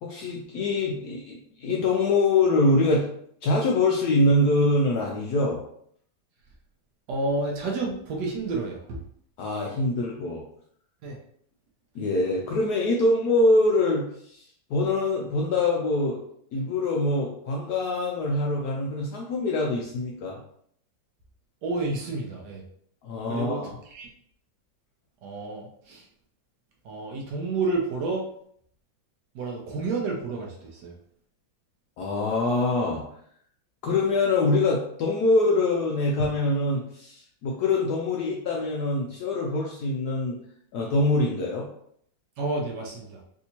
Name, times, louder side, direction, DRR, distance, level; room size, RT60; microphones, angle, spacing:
voice 1, 0.0-3.1 3.4-5.6 9.4-10.4 11.9-14.4 14.7-16.2 16.5-20.4 23.0-23.7 32.0-33.0 33.8-40.4 40.7-41.7, left 2 dB, 75° left, -2 dB, 0.9 m, -24 dB
voice 2, 7.1-9.0 11.0-11.2 21.6-22.6 23.3-24.1 25.2-26.0 26.8-28.2 29.3-30.9 42.4-43.2, right 3 dB, 70° right, -1 dB, 1.1 m, -30 dB
3.4 x 2.7 x 2.8 m, 0.66 s
omnidirectional pair, 2.1 m